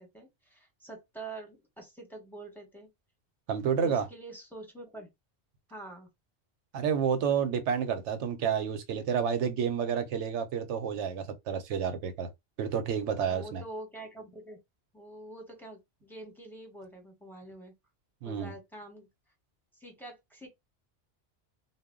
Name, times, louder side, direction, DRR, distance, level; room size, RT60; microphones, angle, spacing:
voice 1, 0.0-2.9 3.8-5.1 5.7-6.1 13.3-14.6 14.9-17.7 18.2-19.1 19.8-20.5, right 2 dB, ahead, 0.7 m, -46 dB
voice 2, 3.5-4.1 6.7-12.3 12.6-13.6 18.2-18.5, right 7 dB, 90° right, 0.9 m, -30 dB
2.2 x 2.1 x 3.5 m
omnidirectional pair, 1.2 m